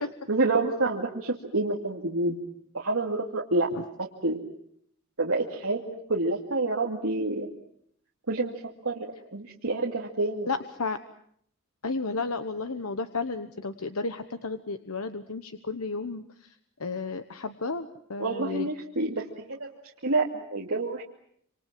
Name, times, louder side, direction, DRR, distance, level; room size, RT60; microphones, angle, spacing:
voice 1, 0.3-2.4 2.7-3.7 4.2-4.4 5.2-7.5 8.3-8.5 8.8-10.5 18.2-19.7 20.0-21.0, right 2 dB, 75° right, -1 dB, 2.5 m, -28 dB
voice 2, 10.5-11.0 11.8-16.5 16.8-18.7, left 3 dB, 85° left, 9 dB, 1.2 m, -33 dB
27.0 x 27.0 x 7.6 m, 0.67 s
head